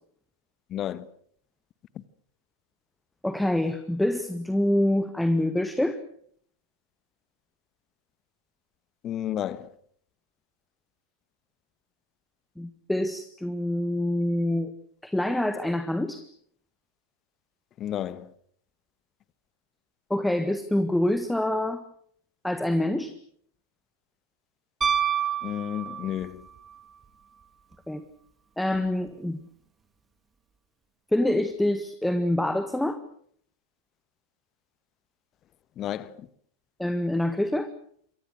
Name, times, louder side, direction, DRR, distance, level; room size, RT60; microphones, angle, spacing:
voice 1, 0.7-1.1 1.9-2.0 9.0-9.7 17.8-18.3 25.4-26.4 35.8-36.3, left 11 dB, 30° left, 1.5 m, -32 dB
voice 2, 3.2-6.0 12.6-14.7 15.0-16.3 20.1-21.8 22.4-23.1 27.9-28.0 28.6-29.4 31.1-33.0 36.8-37.7, left 1 dB, 5° left, 1.6 m, -26 dB
Piano, 24.8-26.4 28.7-28.8, right 8 dB, 15° right, 2.6 m, -27 dB
27.5 x 24.0 x 6.5 m
figure-of-eight pair, 90°, 0 cm